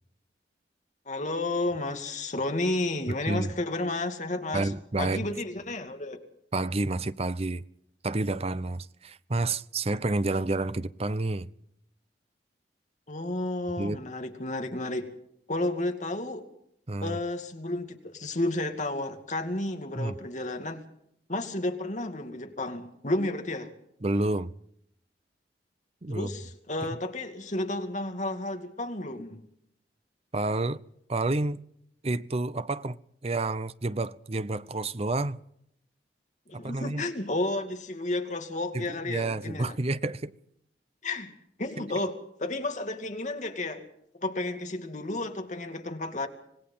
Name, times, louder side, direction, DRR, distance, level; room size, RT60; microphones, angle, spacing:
voice 1, 1.1-4.7 5.0-6.2 13.1-15.1 15.5-16.4 17.0-20.8 21.3-23.7 26.1-29.4 36.5-39.7 41.0-41.3 41.6-43.8 44.1-46.3, left 2 dB, 45° left, 2.4 m, -32 dB
voice 2, 3.1-3.5 4.5-5.3 6.5-7.6 8.0-11.5 13.8-14.0 16.9-17.2 20.0-20.1 24.0-24.5 26.0-26.3 30.3-30.8 31.1-31.7 32.0-33.0 33.2-35.4 36.5-37.0 38.7-40.3, right 2 dB, 35° right, 0.7 m, -29 dB
26.0 x 19.0 x 5.6 m
head